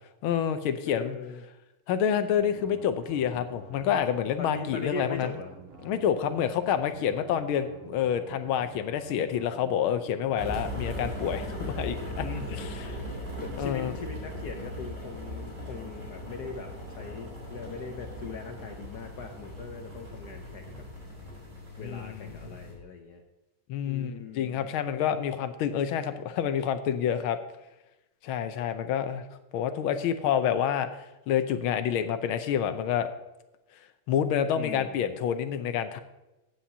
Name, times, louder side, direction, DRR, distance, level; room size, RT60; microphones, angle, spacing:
voice 1, 0.2-1.2 1.9-5.3 5.8-12.3 12.5-13.0 13.6-14.0 21.8-22.5 23.7-27.4 28.2-29.2 29.5-30.9 31.3-33.1 34.1-36.0, left 9 dB, 80° left, 10 dB, 1.5 m, -28 dB
voice 2, 0.8-1.4 4.4-5.6 12.2-12.5 13.4-20.8 21.8-23.2 23.9-24.7 34.5-35.0, left 4 dB, 60° left, 4 dB, 1.2 m, -40 dB
sound 1, 2.3-11.4, right 4 dB, 80° right, 2.8 m, -49 dB
sound 2, 10.4-22.7, equal, 35° right, 4.2 m, -38 dB
15.0 x 8.7 x 2.8 m, 0.99 s
omnidirectional pair, 2.3 m